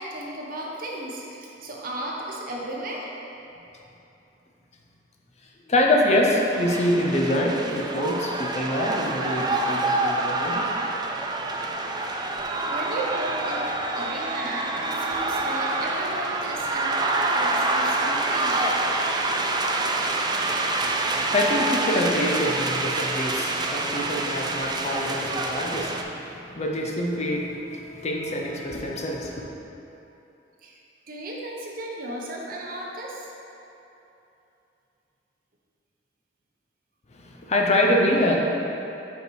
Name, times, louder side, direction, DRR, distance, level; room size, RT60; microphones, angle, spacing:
voice 1, 0.0-3.1 12.7-13.6 14.0-18.6 30.6-30.7 31.1-33.3, right 1 dB, 50° right, -2 dB, 0.9 m, -35 dB
voice 2, 5.7-10.6 11.0-11.1 14.1-14.5 14.8-15.4 20.8-29.5 37.2-38.4, left 1 dB, 40° left, 0 dB, 0.6 m, -25 dB
sound 1, 6.5-26.0, right 2 dB, 25° right, 0.4 m, -26 dB
5.3 x 4.9 x 4.6 m, 2.9 s
head